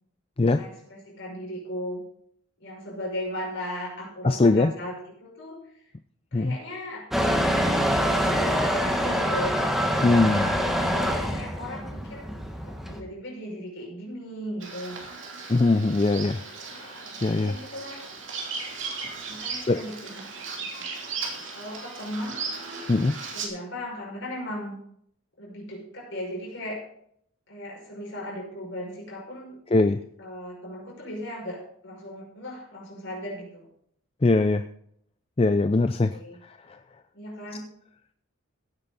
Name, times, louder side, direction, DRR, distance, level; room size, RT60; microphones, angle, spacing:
voice 1, 0.5-2.0 2.6-5.7 6.3-7.1 8.1-9.6 10.8-12.3 12.6-15.0 17.0-18.1 19.3-20.3 20.6-22.4 23.3-24.7 25.4-26.8 27.5-29.6 30.2-33.7 36.1-36.4 37.1-37.7, equal, 55° left, -2 dB, 5.7 m, -37 dB
voice 2, 4.2-4.7 6.3-6.5 10.0-10.5 15.5-16.4 17.2-17.5 19.7-19.8 22.9-23.2 29.7-30.0 34.2-34.6 35.4-36.1, left 2 dB, 25° left, 9 dB, 0.4 m, -21 dB
Motor vehicle (road) / Engine starting / Accelerating revving vroom, 7.1-13.0, equal, ahead, 1.4 m, -25 dB
Bird vocalization bird call bird song, 14.6-23.5, right 4 dB, 55° right, 3.2 m, -37 dB
16.5 x 9.0 x 4.0 m, 0.67 s
head